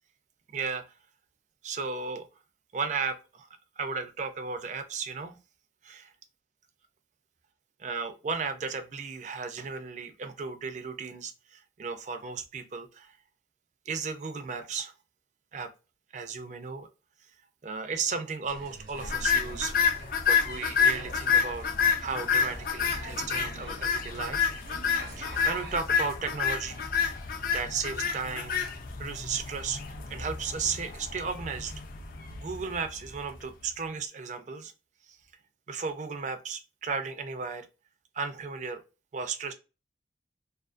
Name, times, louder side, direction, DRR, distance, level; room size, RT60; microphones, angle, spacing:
voice 1, 0.5-1.0 1.6-2.3 2.7-3.5 3.8-5.4 5.8-6.1 7.8-13.2 13.9-14.9 15.5-15.7 16.1-16.9 17.2-17.3 17.6-20.0 20.2-21.7 22.0-24.5 25.1-27.1 27.5-28.7 29.0-31.7 32.4-34.7 35.0-35.2 35.7-37.7 38.1-38.8 39.1-39.5, right 5 dB, 45° right, 8 dB, 0.4 m, -35 dB
sound 1, 18.4-25.9, right 2 dB, 80° right, 0.8 m, -46 dB
sound 2, 19.0-33.4, left 6 dB, 50° left, 0.4 m, -29 dB
2.4 x 2.4 x 2.4 m, 0.30 s
head